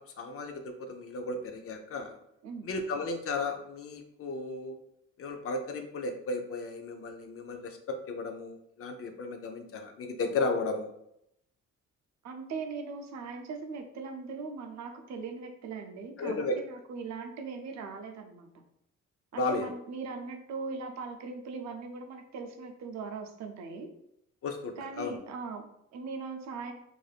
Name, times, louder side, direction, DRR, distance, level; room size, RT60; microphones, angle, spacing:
voice 1, 0.0-2.2 2.6-4.8 5.2-10.9 16.2-16.6 19.4-19.7 24.4-25.2, left 3 dB, 50° left, 5 dB, 0.5 m, -34 dB
voice 2, 12.2-18.5 19.3-23.9 24.8-26.7, right 4 dB, 65° right, 5 dB, 0.5 m, -40 dB
3.2 x 2.6 x 2.3 m, 0.78 s
cardioid pair, 90°, 30 cm